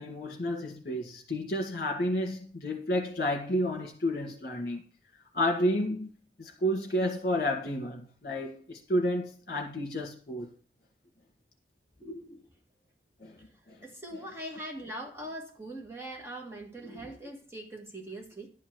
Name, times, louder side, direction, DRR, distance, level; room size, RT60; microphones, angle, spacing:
voice 1, 0.0-4.8 5.3-6.1 6.4-10.5 13.2-13.4 13.7-13.8, equal, 50° left, 2.0 m, -31 dB
voice 2, 12.0-12.5 13.8-18.5, right 1 dB, 15° right, 1.6 m, -41 dB
11.0 x 4.5 x 8.0 m
head